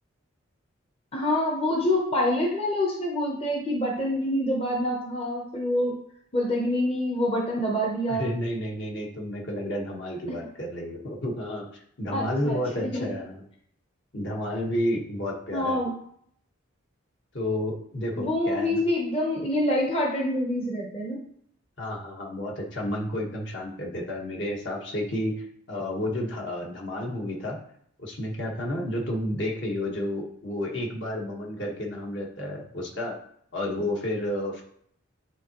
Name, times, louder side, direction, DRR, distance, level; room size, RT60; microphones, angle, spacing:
voice 1, 1.1-6.0 6.3-8.3 12.1-12.6 12.9-13.1 15.5-16.0 18.2-21.2, left 1 dB, 30° left, -1 dB, 0.8 m, -26 dB
voice 2, 8.1-11.6 12.0-13.4 14.1-15.8 17.3-18.8 21.8-25.3 25.7-27.6 28.0-33.2 33.5-34.7, left 1 dB, 60° left, -1 dB, 1.3 m, -31 dB
9.1 x 3.7 x 2.9 m, 0.68 s
head